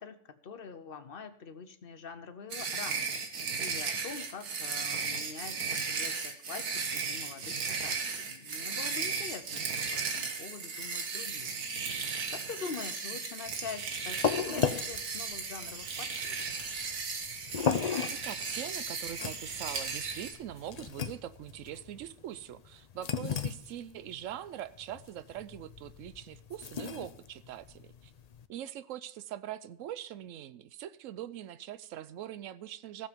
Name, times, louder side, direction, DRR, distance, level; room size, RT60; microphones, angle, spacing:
voice 1, 0.0-16.5, left 5 dB, 45° left, 9 dB, 1.0 m, -45 dB
sound 1, 2.5-20.3, right 5 dB, 85° right, 1.9 m, -36 dB
sound 2, 13.5-28.5, left 6 dB, 60° left, 0.4 m, -36 dB
voice 2, 18.1-28.1 28.5-33.1, right 11 dB, 65° right, 15 dB, 0.9 m, -42 dB
15.0 x 7.1 x 5.2 m, 0.69 s
omnidirectional pair, 1.6 m